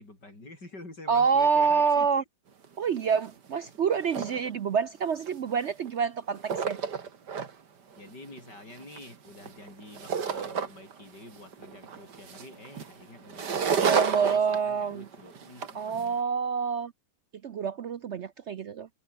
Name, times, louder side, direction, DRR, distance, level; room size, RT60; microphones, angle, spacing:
voice 1, 0.0-2.1 8.0-16.2, left 2 dB, 80° left, 8.1 m, -48 dB
voice 2, 1.1-2.2 2.8-6.8 13.8-15.1 15.7-16.9 17.4-18.9, right 6 dB, 55° right, 0.8 m, -27 dB
sound 1, 2.6-2.7 3.0-3.3 3.6-4.5 5.2-6.0 6.3-7.5 7.9-11.0 11.3-16.1, right 6 dB, 80° right, 2.6 m, -31 dB
omnidirectional pair, 1.8 m